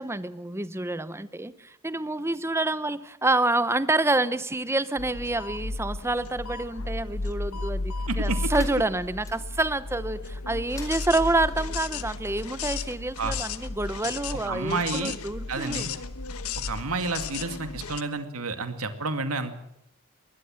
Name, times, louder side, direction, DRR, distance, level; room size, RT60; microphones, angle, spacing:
voice 1, 0.0-15.9, right 2 dB, 10° right, 15 dB, 0.8 m, -28 dB
sound 1, 5.0-18.0, left 3 dB, 80° left, 1.2 m, -34 dB
voice 2, 8.1-8.4 13.2-13.3 14.5-15.1 15.5-15.9 16.6-19.5, right 3 dB, 75° right, 8 dB, 2.3 m, -30 dB
sound 2, 8.5-9.4 10.6-11.5, left 2 dB, 15° left, 4.7 m, -47 dB
23.0 x 19.5 x 7.7 m, 0.79 s
head